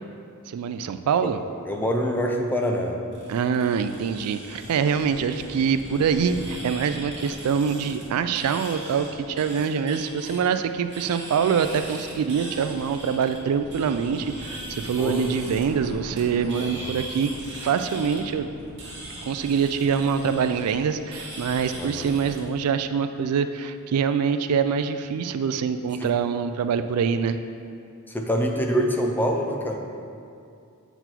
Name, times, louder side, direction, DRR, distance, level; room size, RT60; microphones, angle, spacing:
voice 1, 0.5-1.4 3.3-18.5 19.3-27.4, right 6 dB, 80° right, 10 dB, 0.3 m, -25 dB
voice 2, 1.7-3.0 15.0-15.3 16.6-16.9 21.8-22.1 26.0-26.1 28.1-29.8, equal, 10° left, 1 dB, 0.5 m, -25 dB
sound 1, 3.1-22.4, right 1 dB, 55° right, 1.7 m, -39 dB
8.0 x 4.0 x 4.4 m, 2.4 s
head